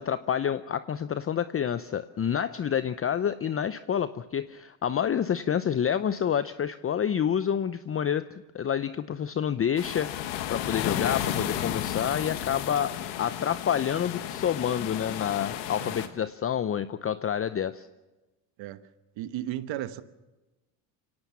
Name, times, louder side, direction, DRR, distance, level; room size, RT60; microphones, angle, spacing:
voice 1, 0.0-17.9, left 8 dB, 30° left, 13 dB, 0.7 m, -28 dB
sound 1, 9.8-16.1, left 11 dB, 90° left, 1.6 m, -33 dB
voice 2, 19.2-20.0, right 13 dB, 65° right, 13 dB, 1.3 m, -35 dB
24.5 x 17.5 x 7.2 m, 1.1 s
supercardioid pair, 80°, 49 cm